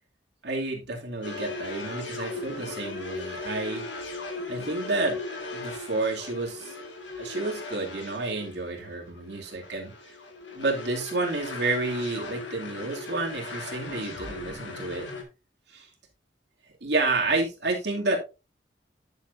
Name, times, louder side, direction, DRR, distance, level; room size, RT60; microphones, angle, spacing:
voice 1, 0.4-3.9 4.5-5.2 5.5-6.8 7.2-9.9 10.5-15.1 15.7-15.9 16.8-18.2, right 2 dB, 65° right, 0 dB, 2.5 m, -30 dB
sound 1, 1.2-15.2, left 3 dB, 75° left, 1.8 m, -38 dB
10.5 x 7.1 x 2.6 m, 0.28 s
head